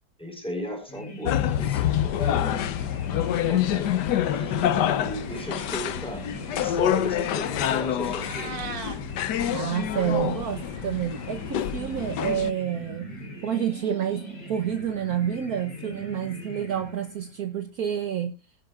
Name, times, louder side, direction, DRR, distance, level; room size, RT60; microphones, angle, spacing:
voice 1, 0.2-2.6 3.1-4.0 4.3-6.2 6.5-8.6, equal, 5° left, 3 dB, 4.4 m, -36 dB
sound 1, 0.9-17.5, right 1 dB, 85° left, 4.4 m, -41 dB
sound 2, 1.2-12.5, left 11 dB, 70° left, 1.3 m, -27 dB
Meow, 8.0-9.0, right 4 dB, 30° right, 1.7 m, -37 dB
voice 2, 9.5-13.1 13.4-18.4, right 9 dB, 60° right, 8 dB, 1.3 m, -29 dB
19.0 x 10.5 x 2.4 m, 0.31 s
omnidirectional pair, 1.9 m